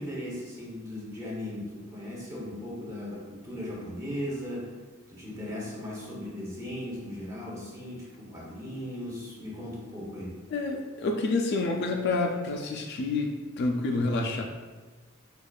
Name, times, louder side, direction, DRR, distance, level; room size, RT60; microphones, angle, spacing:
voice 1, 0.0-4.7 5.1-10.4, left 1 dB, 15° right, -5 dB, 0.8 m, -37 dB
voice 2, 10.5-14.4, left 3 dB, 50° left, 2 dB, 0.3 m, -28 dB
4.8 x 2.4 x 2.3 m, 1.4 s
head